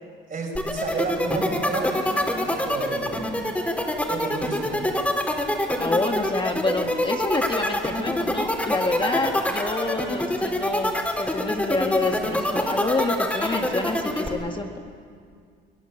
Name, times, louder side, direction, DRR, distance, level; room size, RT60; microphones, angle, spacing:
voice 1, 0.3-2.1 2.4-3.3 4.1-5.0 9.1-9.2, right 3 dB, 45° right, 0 dB, 6.6 m, -31 dB
sound 1, 0.6-14.3, left 1 dB, 5° left, 4.4 m, -25 dB
voice 2, 5.8-10.9 11.2-14.8, left 3 dB, 25° left, 3 dB, 1.7 m, -27 dB
25.5 x 16.5 x 8.8 m, 2.1 s
cardioid pair, 90°, 20 cm